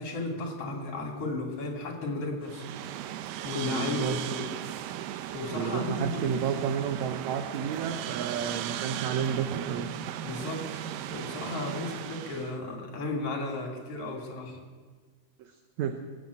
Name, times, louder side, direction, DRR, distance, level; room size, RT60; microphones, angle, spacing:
voice 1, 0.0-2.6 3.4-4.5 5.3-6.6 10.2-14.6, left 2 dB, 50° left, 1 dB, 3.2 m, -34 dB
sound 1, 2.4-12.6, right 11 dB, 90° right, 2.3 m, -37 dB
voice 2, 3.7-4.4 5.5-9.9 15.4-16.0, right 8 dB, 70° right, 7 dB, 1.9 m, -31 dB
20.5 x 7.6 x 8.2 m, 1.5 s
omnidirectional pair, 3.8 m